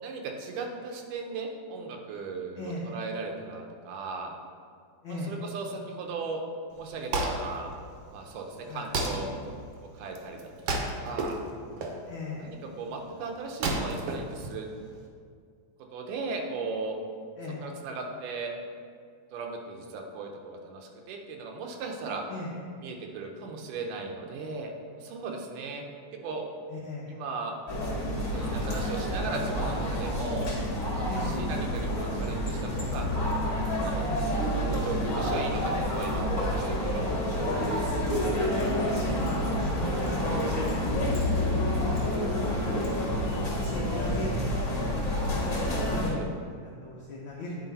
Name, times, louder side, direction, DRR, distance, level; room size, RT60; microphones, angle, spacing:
voice 1, 0.0-4.3 5.1-6.4 6.7-7.7 8.1-9.3 9.9-11.4 12.4-14.7 15.9-17.0 17.6-18.5 19.3-22.3 22.8-24.7 25.0-25.8 26.2-26.5 27.1-27.6 28.3-30.5 31.1-33.1 33.8-34.0 34.4-37.1 46.0-46.3, right 4 dB, 90° right, 2 dB, 2.4 m, -37 dB
voice 2, 2.6-2.9 5.0-5.3 8.7-8.9 12.1-12.5 17.4-17.7 22.3-22.7 26.7-27.1 31.0-31.5 34.0-34.3 38.0-40.2 40.7-40.9 41.2-42.5 43.5-44.4 44.6-44.9 45.2-46.3 46.8-47.6, left 2 dB, 85° left, -4 dB, 1.1 m, -39 dB
Wood, 6.7-15.1, right 2 dB, 70° right, 1.6 m, -34 dB
sound 1, 27.7-46.1, left 1 dB, 35° left, 1.4 m, -28 dB
10.0 x 4.7 x 4.0 m, 2.2 s
omnidirectional pair, 3.6 m